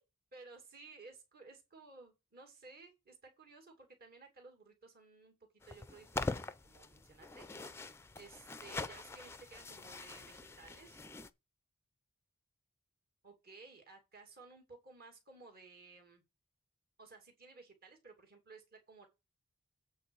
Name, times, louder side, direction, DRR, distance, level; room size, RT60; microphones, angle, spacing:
voice 1, 0.3-5.4 5.7-7.5 8.2-11.0 13.2-16.2 17.0-19.1, right 3 dB, 45° right, 2.4 m, -56 dB
sound 1, 5.6-11.3, left 3 dB, 10° left, 0.4 m, -43 dB
8.5 x 4.2 x 6.9 m
head